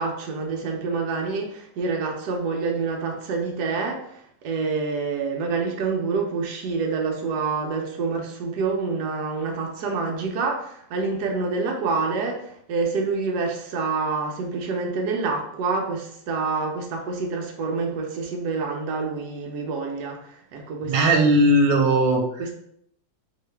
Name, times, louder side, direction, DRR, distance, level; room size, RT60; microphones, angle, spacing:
voice 1, 0.0-21.3 22.4-22.5, right 4 dB, 70° right, 1 dB, 1.2 m, -27 dB
voice 2, 20.8-22.4, right 1 dB, 90° right, 2 dB, 1.4 m, -18 dB
3.9 x 2.8 x 3.3 m, 0.68 s
omnidirectional pair, 1.9 m